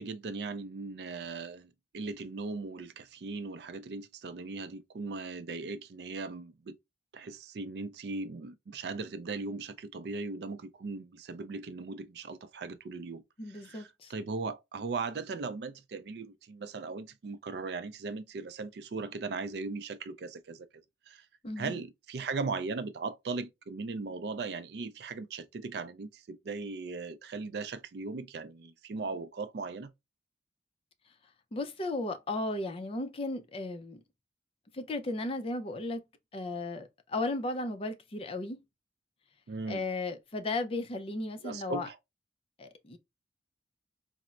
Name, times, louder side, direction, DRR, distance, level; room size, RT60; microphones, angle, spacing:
voice 1, 0.0-6.8 7.1-13.2 13.5-21.3 21.6-29.9 39.5-39.8 41.4-42.0, right 4 dB, 60° right, 0.4 m, -38 dB
voice 2, 13.4-14.1 21.4-21.8 31.5-34.0 34.7-36.0 36.3-38.6 39.7-41.9 42.6-43.0, left 2 dB, 30° left, 0.4 m, -35 dB
4.2 x 2.0 x 2.3 m
head